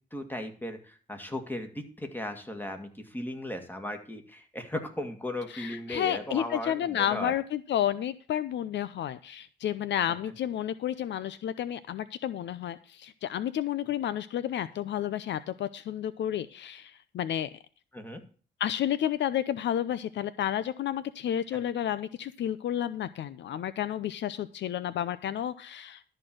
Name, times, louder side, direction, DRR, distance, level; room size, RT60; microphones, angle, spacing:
voice 1, 0.1-7.4 17.9-18.2, left 1 dB, 10° left, 6 dB, 2.0 m, -37 dB
voice 2, 5.5-17.5 18.6-26.1, left 10 dB, 65° left, 15 dB, 0.6 m, -31 dB
12.5 x 4.5 x 7.6 m, 0.41 s
cardioid pair, 90°, 20 cm